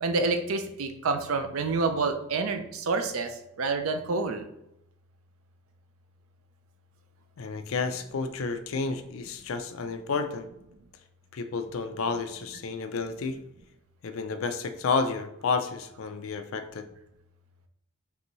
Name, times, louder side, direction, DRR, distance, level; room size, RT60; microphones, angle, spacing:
voice 1, 0.0-4.4, right 3 dB, 70° right, 7 dB, 0.5 m, -28 dB
voice 2, 7.4-10.5 11.3-13.4 14.0-16.9, left 4 dB, 65° left, 8 dB, 0.4 m, -31 dB
5.4 x 2.6 x 3.0 m, 0.85 s
head